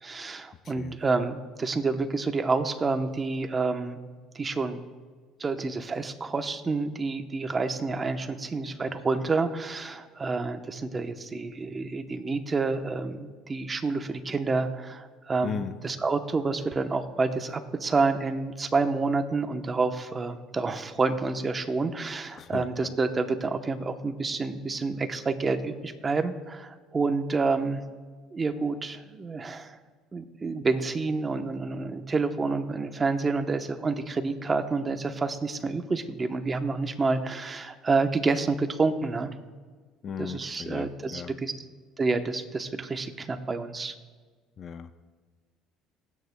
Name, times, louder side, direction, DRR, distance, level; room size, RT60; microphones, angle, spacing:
voice 1, 0.0-4.0 4.3-4.8 5.4-27.8 28.3-29.8 30.1-39.3 40.2-41.5 42.0-43.9, right 4 dB, 25° right, 8 dB, 0.9 m, -28 dB
voice 2, 0.6-1.0 15.4-15.7 22.3-22.9 40.0-41.3 44.6-44.9, left 7 dB, 45° left, 11 dB, 0.6 m, -37 dB
27.0 x 9.5 x 2.3 m, 1.5 s
supercardioid pair, 100°, 0 cm